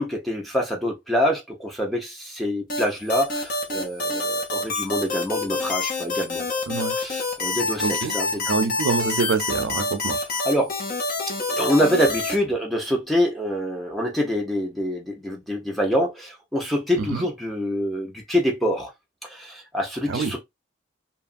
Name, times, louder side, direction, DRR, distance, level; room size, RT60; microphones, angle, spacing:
voice 1, 0.0-6.5 7.0-8.5 10.4-10.8 11.5-18.9 19.2-20.4, equal, ahead, 0.7 m, -25 dB
sound 1, 2.7-12.3, left 2 dB, 45° left, 0.9 m, -27 dB
voice 2, 6.7-7.0 7.8-8.1 8.5-10.2 17.0-17.3 20.1-20.3, right 5 dB, 85° right, 0.4 m, -25 dB
2.8 x 2.5 x 2.4 m
head